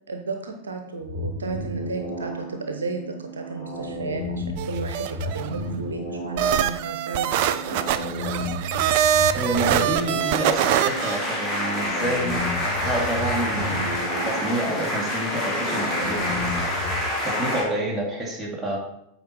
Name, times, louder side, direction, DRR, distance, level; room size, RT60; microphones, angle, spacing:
voice 1, 0.1-7.8, right 3 dB, 70° right, 5 dB, 0.8 m, -33 dB
sound 1, 1.0-17.0, left 1 dB, 70° left, 2.4 m, -33 dB
sound 2, 4.6-5.6 6.4-11.2, right 10 dB, 50° right, 0.4 m, -23 dB
voice 2, 9.3-13.8 14.2-16.4 17.2-18.8, right 1 dB, ahead, -5 dB, 2.3 m, -28 dB
sound 3, 10.2-17.6, left 1 dB, 20° left, 2.4 m, -27 dB
8.3 x 4.4 x 4.5 m, 0.76 s
figure-of-eight pair, 90°, 0 cm